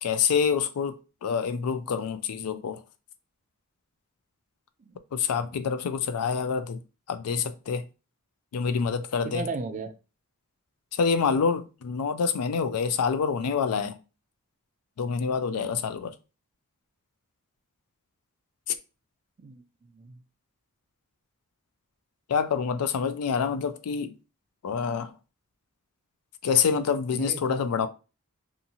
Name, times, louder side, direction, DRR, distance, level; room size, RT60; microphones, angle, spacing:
voice 1, 0.0-2.8 5.1-6.8 7.1-7.8 8.5-9.4 10.9-13.9 15.0-16.1 18.7-18.8 22.3-24.1 24.6-25.1 26.4-27.9, left 6 dB, 75° left, 0.4 m, -27 dB
voice 2, 9.2-9.9 19.4-20.2 27.1-27.9, right 3 dB, 35° right, 0.3 m, -37 dB
2.7 x 2.4 x 2.7 m
head